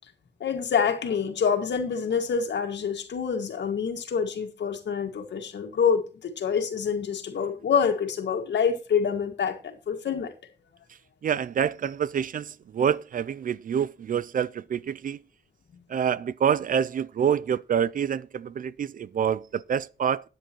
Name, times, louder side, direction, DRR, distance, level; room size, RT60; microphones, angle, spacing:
voice 1, 0.4-10.3, left 6 dB, 75° left, 1.9 m, -26 dB
voice 2, 11.2-15.2 15.9-20.3, right 8 dB, 50° right, 0.4 m, -27 dB
13.0 x 9.1 x 3.0 m
wide cardioid pair, 155°, 18 cm